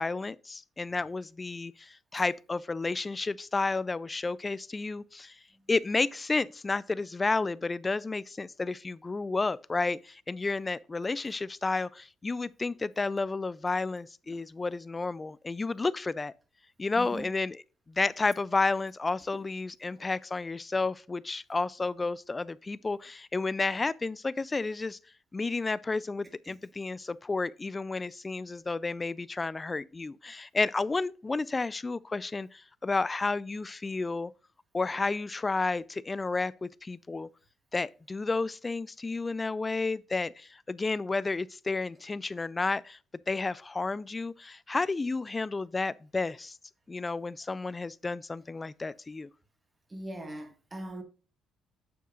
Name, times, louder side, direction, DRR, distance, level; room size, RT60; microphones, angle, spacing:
voice 1, 0.0-5.3 5.7-16.3 16.8-25.0 25.3-34.3 34.7-37.3 37.7-43.0 43.3-46.6 46.9-49.3, left 3 dB, 20° left, 0.3 m, -31 dB
voice 2, 17.0-17.3 19.9-20.0 26.5-26.6 49.9-51.0, right 1 dB, 20° right, 1.7 m, -41 dB
8.6 x 7.2 x 2.5 m
cardioid pair, 105°, 0 cm